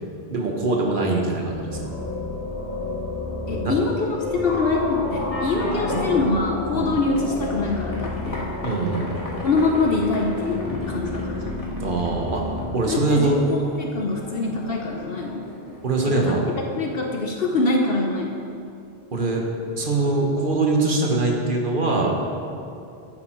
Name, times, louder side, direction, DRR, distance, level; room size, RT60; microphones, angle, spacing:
voice 1, 0.3-1.8 3.5-3.7 6.7-6.9 8.6-9.1 11.8-12.4 12.7-13.4 15.8-16.4 19.1-19.4 19.8-22.2, right 3 dB, 50° right, 0 dB, 1.5 m, -22 dB
sound 1, 1.2-12.6, left 2 dB, 15° left, 2.4 m, -31 dB
voice 2, 3.5-8.5 9.4-11.6 12.8-15.4 16.0-16.3 16.8-18.4, left 3 dB, 60° left, 1 dB, 1.0 m, -24 dB
sound 2, 3.9-16.7, equal, 30° left, 1.9 m, -35 dB
12.0 x 8.9 x 4.6 m, 2.6 s
omnidirectional pair, 1.1 m